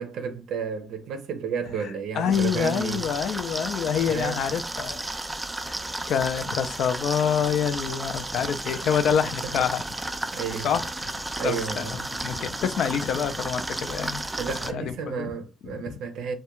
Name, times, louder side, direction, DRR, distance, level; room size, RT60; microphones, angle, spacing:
voice 1, 0.0-3.1 4.1-4.4 10.3-10.7 11.4-12.0 14.3-16.4, right 6 dB, 80° right, 0.5 m, -32 dB
voice 2, 2.1-5.0 5.6-5.8 6.1-9.8 10.6-10.9 11.1-14.2 14.6-15.3 15.6-16.0, left 8 dB, 75° left, 0.3 m, -27 dB
sound 1, 2.3-14.7, right 2 dB, 15° right, 0.3 m, -33 dB
2.3 x 2.2 x 2.9 m
cardioid pair, 90°, 0 cm